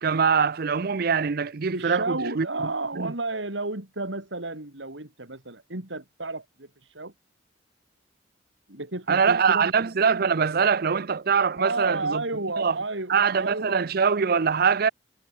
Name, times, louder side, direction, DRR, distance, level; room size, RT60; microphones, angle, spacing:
voice 1, 0.0-2.5 3.0-3.1 9.1-12.2 12.6-12.8 13.1-14.9, right 6 dB, 55° right, 0.6 m, -23 dB
voice 2, 1.7-7.1 8.7-9.7 11.6-13.1 13.4-13.8, right 2 dB, 80° right, 3.8 m, -32 dB
head